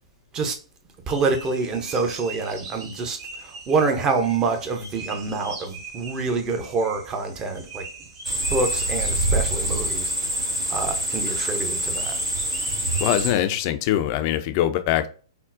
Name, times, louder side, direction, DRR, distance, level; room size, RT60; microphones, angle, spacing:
voice 1, 1.1-7.8 8.5-10.1 10.7-12.2, right 4 dB, 20° right, 0.6 m, -26 dB
sound 1, 1.1-13.4, right 3 dB, 40° right, 1.1 m, -42 dB
sound 2, 8.2-13.3, right 1 dB, 80° right, 1.0 m, -25 dB
voice 2, 13.0-15.1, left 12 dB, 40° left, 0.3 m, -23 dB
3.6 x 2.1 x 2.5 m
figure-of-eight pair, 115°, 3 cm